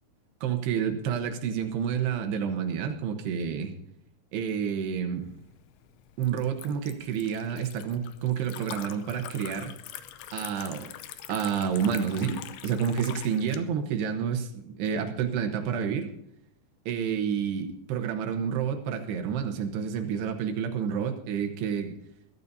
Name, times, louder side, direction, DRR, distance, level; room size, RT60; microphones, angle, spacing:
voice 1, 0.4-3.7 4.3-5.3 6.2-9.7 10.3-10.9 11.3-16.1 16.9-21.9, right 7 dB, 80° right, 5 dB, 3.2 m, -29 dB
Liquid, 5.2-13.6, left 12 dB, 75° left, 2.5 m, -44 dB
22.5 x 13.0 x 2.7 m, 0.77 s
omnidirectional pair, 4.8 m